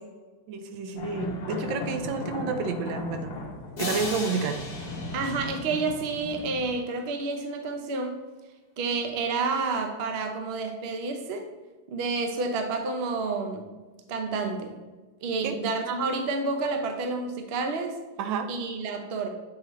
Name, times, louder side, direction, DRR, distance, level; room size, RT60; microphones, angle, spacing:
voice 1, 0.5-3.4 3.8-4.6 15.4-15.5 18.2-18.5, right 5 dB, 85° right, 7 dB, 1.4 m, -30 dB
sound 1, 1.0-6.7, left 3 dB, 60° left, 1.4 m, -36 dB
sound 2, 3.8-6.6, left 2 dB, 35° left, 0.7 m, -37 dB
voice 2, 5.1-8.2 8.8-11.5 11.9-13.6 14.1-14.7 15.2-17.9 18.5-19.3, right 3 dB, 60° right, 4 dB, 0.6 m, -29 dB
7.8 x 4.0 x 3.1 m, 1.2 s
omnidirectional pair, 2.0 m